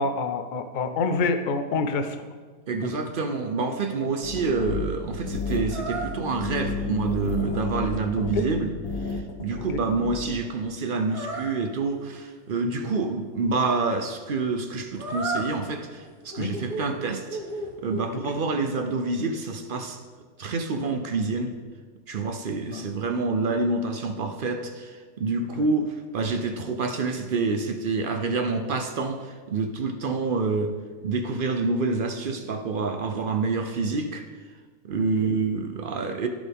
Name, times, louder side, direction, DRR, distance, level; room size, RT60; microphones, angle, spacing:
voice 1, 0.0-2.2 2.8-3.0 8.3-8.5 9.7-9.8 12.8-12.9 16.4-16.5 22.7-22.8 25.6-25.7 35.2-35.3, left 3 dB, 55° left, 9 dB, 0.5 m, -27 dB
voice 2, 2.7-8.7 9.0-17.4 17.8-20.0 20.4-21.5 22.1-30.7 31.0-34.2 34.8-36.3, right 4 dB, 55° right, 6 dB, 0.6 m, -27 dB
sound 1, 4.2-10.2, left 3 dB, 85° left, 1.3 m, -32 dB
sound 2, 5.7-6.1 11.1-11.5 15.0-15.5 16.0-16.9 17.3-18.1, right 2 dB, 80° right, 2.1 m, -32 dB
15.0 x 5.2 x 3.5 m, 1.5 s
omnidirectional pair, 1.5 m